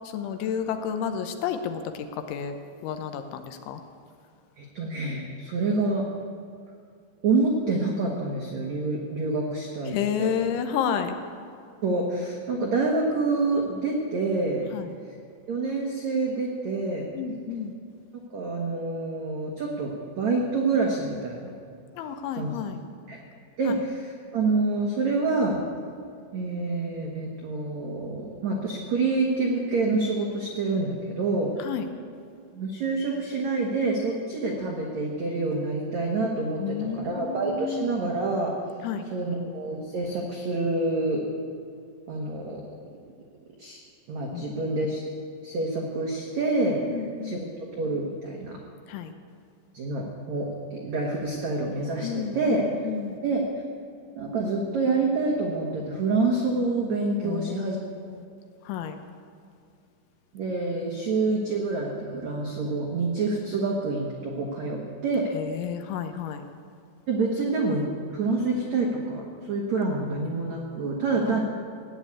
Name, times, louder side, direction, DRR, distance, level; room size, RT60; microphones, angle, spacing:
voice 1, 0.1-2.6 2.8-3.8 9.9-11.2 14.7-14.9 17.1-17.7 22.0-22.8 23.7-23.8 31.6-31.9 36.6-38.0 38.8-39.1 44.3-44.4 46.9-47.4 48.9-49.1 52.0-53.2 57.2-57.7 58.7-59.0 65.3-66.4 71.3-71.4, left 7 dB, 75° left, 7 dB, 3.0 m, -31 dB
voice 2, 4.6-6.1 7.2-10.3 11.8-14.7 15.5-17.1 18.3-21.5 22.3-22.6 23.1-23.2 23.6-25.6 26.3-31.6 32.5-38.5 39.1-41.3 42.1-42.6 43.6-43.8 44.1-45.0 45.4-46.8 47.2-47.5 47.7-48.6 49.7-52.8 53.2-53.6 54.1-57.8 60.3-65.3 67.1-71.4, right 3 dB, 90° right, -1 dB, 1.5 m, -27 dB
17.0 x 9.5 x 8.6 m, 2.3 s
omnidirectional pair, 5.8 m